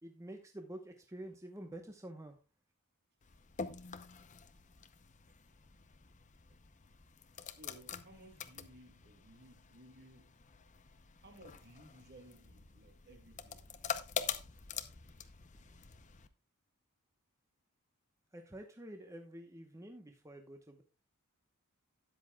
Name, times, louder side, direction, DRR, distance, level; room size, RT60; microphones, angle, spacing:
voice 1, 0.0-2.4 14.5-14.6 15.6-15.7 18.3-20.8, right 1 dB, 15° right, 1.0 m, -49 dB
sound 1, 3.2-16.3, left 7 dB, 35° left, 0.7 m, -46 dB
voice 2, 7.5-10.3 11.2-13.7, right 1 dB, 50° right, 2.3 m, -58 dB
13.0 x 9.7 x 2.3 m
head